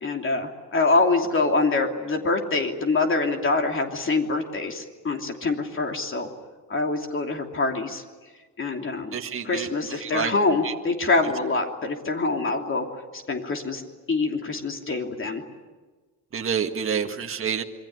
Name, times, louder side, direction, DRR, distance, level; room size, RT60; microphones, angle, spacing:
voice 1, 0.0-6.3 6.7-8.0 8.6-9.2 9.4-12.9 13.3-13.8 14.1-15.4 17.0-17.2, left 3 dB, 40° left, 3 dB, 3.0 m, -25 dB
voice 2, 9.1-9.7 10.0-10.3 10.6-10.7 16.3-17.6, right 7 dB, 40° right, 3 dB, 1.8 m, -28 dB
27.0 x 23.0 x 9.6 m, 1.3 s
cardioid pair, 125°, 33 cm